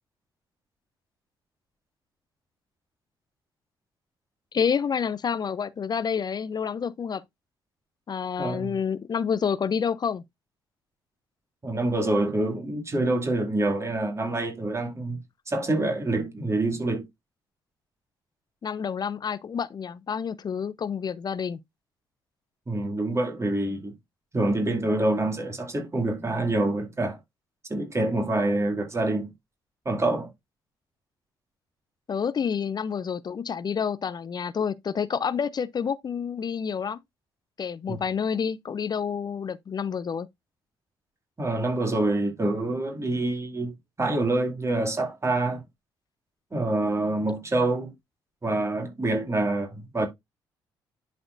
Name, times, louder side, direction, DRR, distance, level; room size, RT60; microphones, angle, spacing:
voice 1, 4.5-7.2 8.1-10.2 18.6-21.6 32.1-37.0 37.6-40.3, left 7 dB, 40° left, 0.6 m, -28 dB
voice 2, 8.4-8.8 11.6-15.2 15.5-17.1 22.7-23.9 24.3-27.2 27.7-29.3 29.8-30.3 37.9-38.0 41.4-45.6 46.5-47.9 48.4-50.1, right 2 dB, 25° right, 2.4 m, -26 dB
11.0 x 4.2 x 2.5 m
hypercardioid pair, 45°, 11 cm